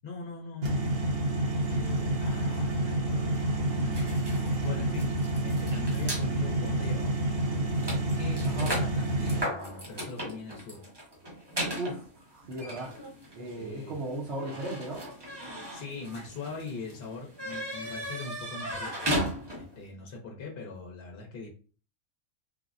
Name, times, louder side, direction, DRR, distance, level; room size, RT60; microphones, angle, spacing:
voice 1, 0.0-0.9 1.5-5.1 5.4-7.1 8.2-10.8 13.5-13.9 15.5-19.1 19.5-21.5, left 3 dB, 50° left, -1 dB, 0.8 m, -42 dB
sound 1, 0.6-9.4, right 1 dB, 75° right, 1.4 m, -28 dB
sound 2, 3.9-6.3 7.0-7.1 7.4-19.8, equal, 30° right, 0.5 m, -37 dB
voice 2, 11.8-12.9 13.3-15.0, right 1 dB, 60° right, -4 dB, 0.9 m, -36 dB
3.3 x 2.1 x 2.4 m, 0.37 s
omnidirectional pair, 1.4 m